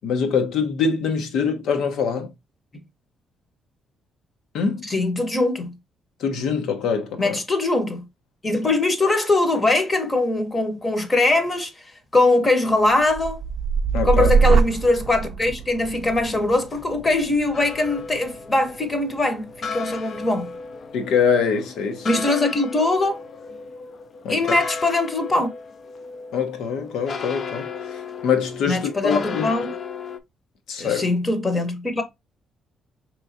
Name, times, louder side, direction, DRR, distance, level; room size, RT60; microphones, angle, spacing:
voice 1, 0.0-2.3 4.5-4.9 6.2-7.4 13.9-14.3 20.9-22.2 24.2-24.4 26.3-29.5 30.7-31.0, left 6 dB, 85° left, 0.9 m, -24 dB
voice 2, 4.8-5.7 7.2-8.0 8.4-13.4 14.0-20.5 22.0-23.2 24.3-25.5 28.7-29.7 30.8-32.0, left 2 dB, 25° left, 0.8 m, -22 dB
sound 1, 12.8-20.9 21.3-21.8, right 5 dB, 60° right, 0.4 m, -25 dB
sound 2, 17.5-30.2, left 5 dB, 45° left, 0.4 m, -35 dB
4.6 x 3.0 x 2.6 m
cardioid pair, 130°, 0 cm